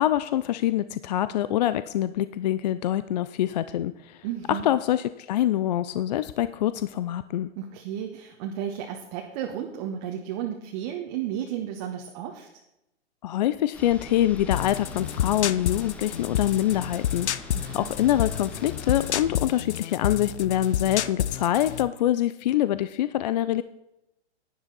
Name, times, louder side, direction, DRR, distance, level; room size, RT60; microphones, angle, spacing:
voice 1, 0.0-4.2 4.5-7.5 13.2-23.6, left 12 dB, 40° left, 14 dB, 0.4 m, -25 dB
voice 2, 4.2-4.7 7.6-12.5 17.5-17.9, right 10 dB, 35° right, 2 dB, 1.3 m, -33 dB
sound 1, 13.7-19.4, left 2 dB, 5° left, 0.7 m, -43 dB
sound 2, 14.5-21.9, left 10 dB, 75° left, 0.7 m, -30 dB
11.0 x 10.0 x 4.0 m, 0.88 s
hypercardioid pair, 130°, 34 cm